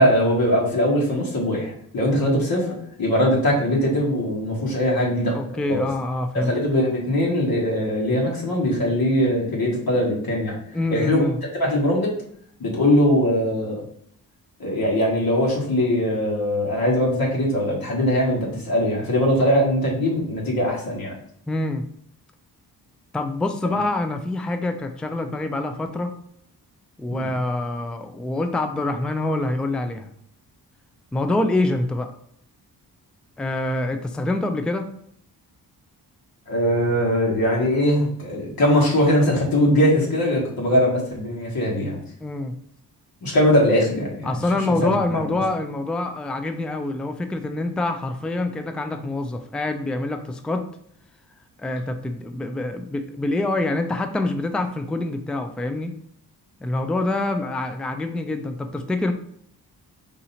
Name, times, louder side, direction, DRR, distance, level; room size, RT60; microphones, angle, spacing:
voice 1, 0.0-5.4 5.7-5.8 6.3-10.6 10.9-11.2 11.6-12.1 12.6-13.8 14.6-21.2 23.7-23.8 27.1-27.3 36.5-42.0 43.2-44.4 44.8-45.2, equal, 60° left, -3 dB, 1.6 m, -21 dB
voice 2, 5.3-6.5 10.7-11.4 21.5-21.8 23.1-26.1 27.0-30.1 31.1-32.1 33.4-34.9 42.2-42.5 44.2-50.6 51.6-55.9 56.6-59.1, left 2 dB, ahead, 7 dB, 0.4 m, -26 dB
3.8 x 2.8 x 4.2 m, 0.67 s
cardioid pair, 65°, 40 cm